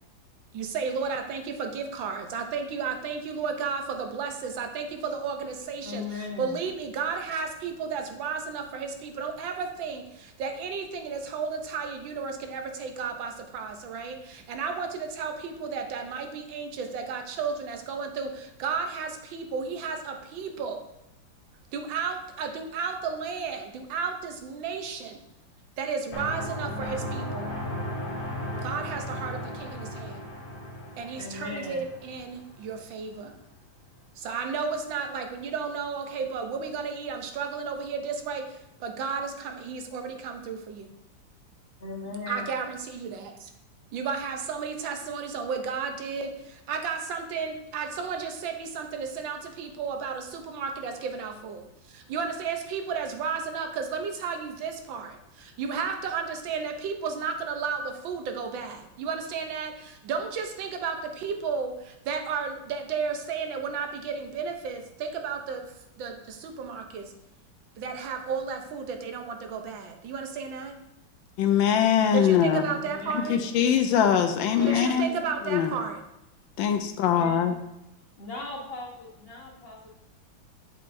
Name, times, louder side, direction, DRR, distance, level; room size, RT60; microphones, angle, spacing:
voice 1, 0.5-20.8 21.7-25.2 25.8-27.5 28.6-30.2 31.0-33.3 34.2-40.9 42.3-43.5 43.9-65.7 66.0-67.1 67.8-70.8 72.1-73.4 74.7-76.0, right 5 dB, 75° right, 5 dB, 1.5 m, -33 dB
voice 2, 5.8-6.6 31.1-31.8 41.8-42.5 72.7-73.5 74.6-75.1 77.1-77.4 78.2-79.9, left 3 dB, 35° left, -3 dB, 1.3 m, -38 dB
sound 1, 26.1-32.8, left 1 dB, 50° left, 1.8 m, -36 dB
voice 3, 71.4-72.7 73.1-75.1 75.5-75.7 76.6-77.5, left 8 dB, 80° left, 7 dB, 1.3 m, -22 dB
8.3 x 6.8 x 2.6 m, 0.84 s
omnidirectional pair, 2.1 m